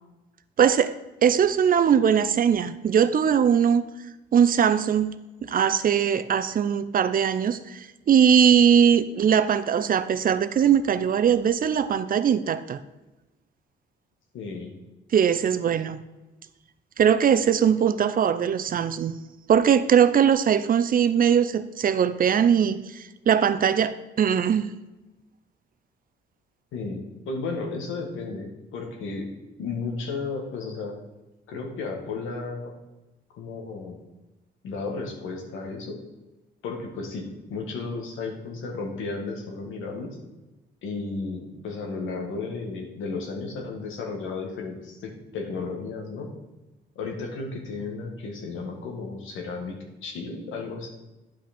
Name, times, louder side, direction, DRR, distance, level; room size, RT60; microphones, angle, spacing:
voice 1, 0.6-0.9 1.2-3.8 4.3-5.1 5.4-12.8 15.1-16.0 17.0-19.2 19.5-24.7, right 8 dB, 45° right, 13 dB, 0.5 m, -21 dB
voice 2, 14.3-14.7 26.7-28.5 28.7-29.3 29.6-30.9 31.5-32.7 33.3-34.0 34.6-36.0 36.6-40.1 40.8-46.3 47.0-50.9, left 4 dB, 80° left, 2 dB, 1.9 m, -33 dB
9.8 x 5.9 x 4.3 m, 1.1 s
cardioid pair, 90°, 20 cm